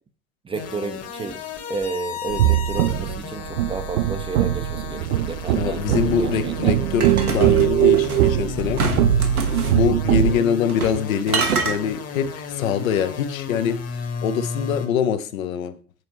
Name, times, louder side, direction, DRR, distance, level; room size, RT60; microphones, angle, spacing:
voice 1, 0.4-1.4 1.7-6.8, right 4 dB, 15° right, 7 dB, 0.5 m, -32 dB
sound 1, 0.5-14.9, left 6 dB, 35° left, 1.1 m, -34 dB
sound 2, 2.3-10.4, right 13 dB, 65° right, 0.5 m, -21 dB
voice 2, 5.5-8.8 9.7-13.8 14.2-15.8, left 8 dB, 70° left, 11 dB, 0.7 m, -24 dB
sound 3, 7.0-8.3 8.8-9.8 10.7-11.0 11.3-11.8, right 4 dB, 85° right, 1.0 m, -25 dB
7.8 x 4.1 x 3.0 m, 0.42 s
figure-of-eight pair, 75°, 43 cm